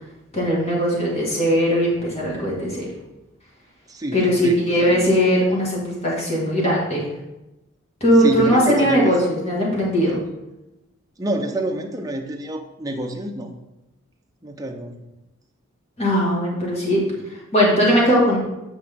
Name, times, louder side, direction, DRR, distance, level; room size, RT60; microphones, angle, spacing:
voice 1, 0.3-2.9 4.1-7.1 8.0-10.2 16.0-17.0 17.5-18.4, equal, 30° left, -4 dB, 2.2 m, -19 dB
voice 2, 3.9-5.1 8.2-9.1 11.2-13.5 14.4-15.0, right 1 dB, 15° right, 3 dB, 0.8 m, -27 dB
8.2 x 5.7 x 3.7 m, 0.98 s
head